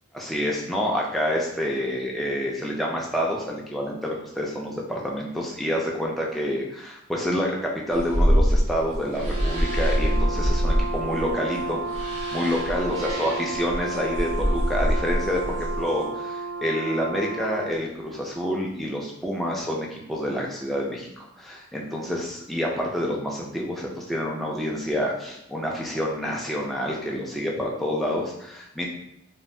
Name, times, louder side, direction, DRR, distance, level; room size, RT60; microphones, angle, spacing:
voice 1, 0.1-28.9, equal, ahead, -3 dB, 0.3 m, -28 dB
sound 1, 7.9-16.0, equal, 85° right, 0.9 m, -25 dB
Brass instrument, 9.1-17.8, right 4 dB, 45° right, 0.6 m, -32 dB
2.6 x 2.3 x 3.2 m, 0.80 s
head